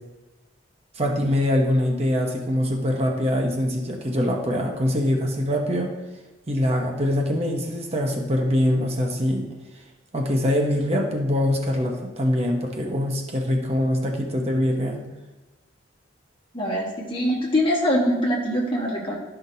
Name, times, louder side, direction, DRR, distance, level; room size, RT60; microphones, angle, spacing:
voice 1, 0.9-5.9 6.5-9.5 10.1-15.0, left 1 dB, 35° right, 1 dB, 0.9 m, -23 dB
voice 2, 16.5-19.2, equal, 30° left, -3 dB, 1.6 m, -23 dB
12.0 x 5.7 x 2.7 m, 1.1 s
head